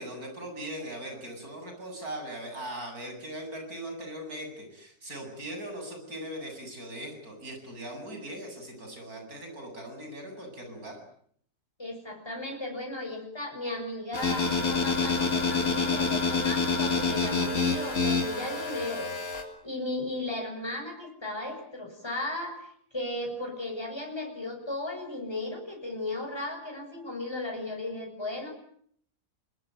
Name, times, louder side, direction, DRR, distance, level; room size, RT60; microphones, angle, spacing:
voice 1, 0.0-11.0, right 1 dB, 70° right, 4 dB, 8.5 m, -40 dB
voice 2, 11.8-19.1 19.6-28.5, left 2 dB, 15° left, 2 dB, 7.0 m, -35 dB
sound 1, 14.1-19.4, left 4 dB, 65° left, 3.9 m, -27 dB
26.0 x 21.0 x 9.3 m, 0.64 s
omnidirectional pair, 1.6 m